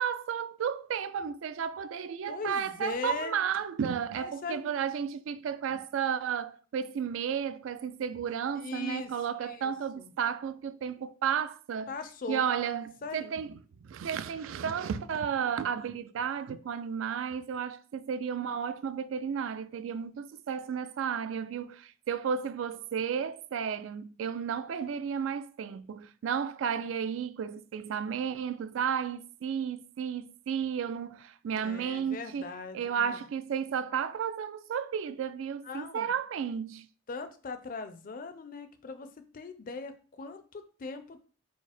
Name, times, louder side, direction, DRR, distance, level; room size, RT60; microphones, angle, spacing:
voice 1, 0.0-12.0 12.3-32.5 32.7-36.9, right 7 dB, 80° right, 0.3 m, -33 dB
voice 2, 2.3-3.4 4.2-4.8 8.5-9.1 9.4-10.1 11.9-12.4 13.0-13.3 31.5-33.2 35.6-36.1 37.1-41.2, left 4 dB, 45° left, 0.4 m, -40 dB
4.8 x 2.0 x 4.1 m
head